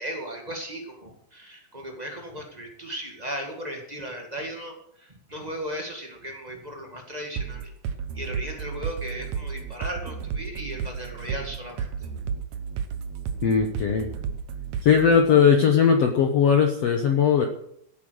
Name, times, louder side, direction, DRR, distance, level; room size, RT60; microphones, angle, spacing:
voice 1, 0.0-7.7 8.1-12.1, right 1 dB, 40° right, 1 dB, 0.5 m, -36 dB
sound 1, 7.4-15.2, right 6 dB, 70° right, 1.7 m, -32 dB
voice 2, 13.4-14.1 14.8-17.5, left 7 dB, 80° left, 4 dB, 1.4 m, -19 dB
16.5 x 8.8 x 6.3 m, 0.72 s
omnidirectional pair, 4.7 m